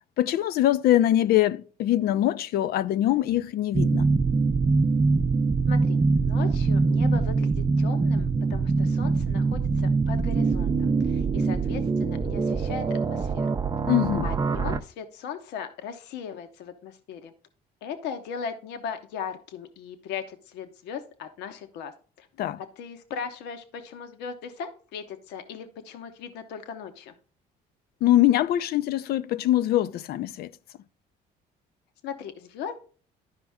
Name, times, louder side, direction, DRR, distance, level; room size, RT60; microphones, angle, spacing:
voice 1, 0.2-4.1 13.9-14.3 22.4-22.6 28.0-30.5, left 13 dB, 65° left, 0.5 m, -23 dB
sound 1, 3.7-14.8, right 4 dB, 20° right, 0.5 m, -23 dB
voice 2, 5.7-13.6 14.2-17.3 17.8-21.9 22.2-22.3 22.8-27.1 32.0-32.8, left 6 dB, 85° left, 1.0 m, -38 dB
11.5 x 5.3 x 3.5 m
cardioid pair, 110°, 17 cm